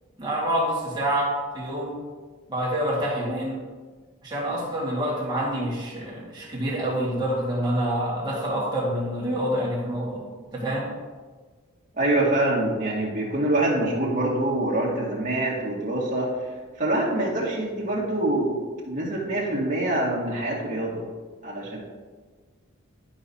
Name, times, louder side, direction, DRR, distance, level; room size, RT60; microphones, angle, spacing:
voice 1, 0.2-2.0 2.5-3.6 4.2-10.3 10.5-10.9, right 1 dB, 20° right, -5 dB, 1.8 m, -27 dB
voice 2, 12.0-16.3 16.8-18.6 18.9-21.0 21.4-21.8, right 1 dB, 35° right, -5 dB, 1.9 m, -25 dB
11.5 x 4.9 x 2.8 m, 1.4 s
head